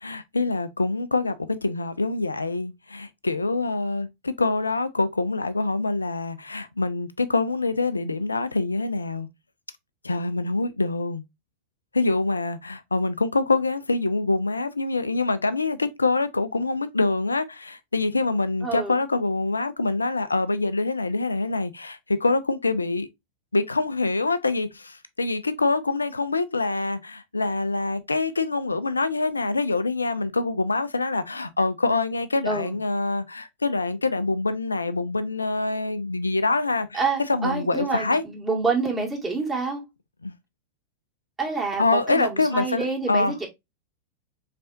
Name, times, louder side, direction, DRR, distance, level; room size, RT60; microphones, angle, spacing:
voice 1, 0.0-9.3 10.0-11.2 11.9-23.1 23.5-37.0 37.3-38.2 40.2-40.3 41.8-43.4, left 3 dB, 80° left, 0.4 m, -25 dB
voice 2, 18.6-19.0 32.5-32.8 36.9-39.8 41.4-43.5, right 4 dB, 15° right, 1.8 m, -27 dB
4.2 x 3.3 x 2.4 m
figure-of-eight pair, 90°, 0 cm